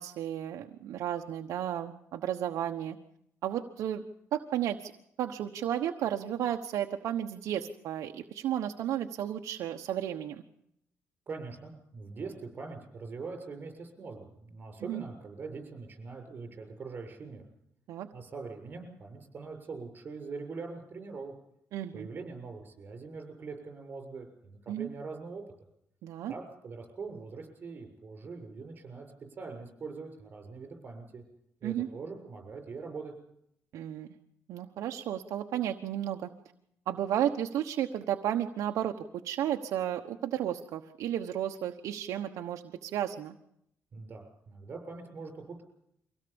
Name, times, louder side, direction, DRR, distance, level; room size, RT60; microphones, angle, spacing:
voice 1, 0.0-3.0 3.4-4.0 4.3-4.9 5.2-10.4 14.8-15.0 17.9-18.1 21.7-22.1 24.7-24.9 26.0-26.3 31.6-31.9 33.7-34.1 34.5-36.3 36.9-38.9 39.2-43.4, right 11 dB, 80° right, 4 dB, 1.2 m, -33 dB
voice 2, 11.3-17.4 18.1-21.3 21.9-25.4 26.3-29.1 29.4-31.2 31.6-33.1 43.9-45.6, right 4 dB, 35° right, 4 dB, 6.9 m, -42 dB
24.5 x 17.5 x 7.1 m, 0.74 s
cardioid pair, 145°, 5 cm